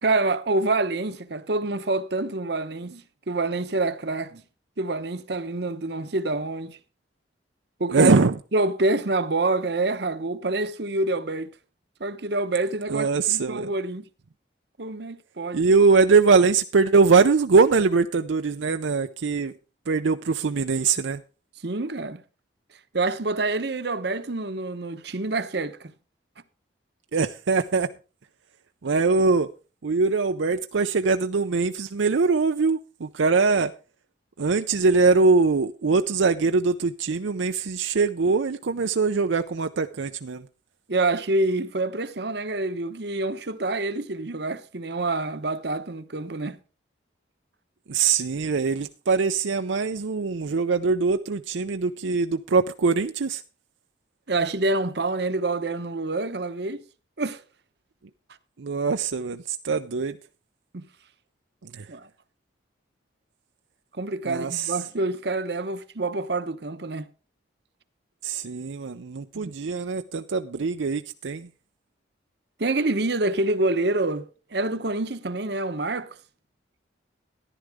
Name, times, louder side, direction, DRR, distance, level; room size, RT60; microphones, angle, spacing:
voice 1, 0.0-4.4 4.8-6.8 7.8-8.1 8.5-11.5 12.0-14.1 14.8-15.6 21.6-22.2 22.9-25.9 40.9-46.6 54.3-56.8 57.2-57.4 60.7-60.8 61.9-62.1 64.0-67.1 69.3-69.5 72.6-76.2, right 2 dB, 60° right, 0.9 m, -27 dB
voice 2, 7.9-8.3 12.9-13.7 15.5-19.5 19.9-21.2 27.1-27.9 28.8-29.5 29.8-33.7 34.4-40.5 47.9-53.4 58.6-60.2 61.6-61.9 64.2-64.8 68.2-71.5, right 4 dB, 80° right, 0.6 m, -22 dB
14.0 x 11.0 x 3.6 m
head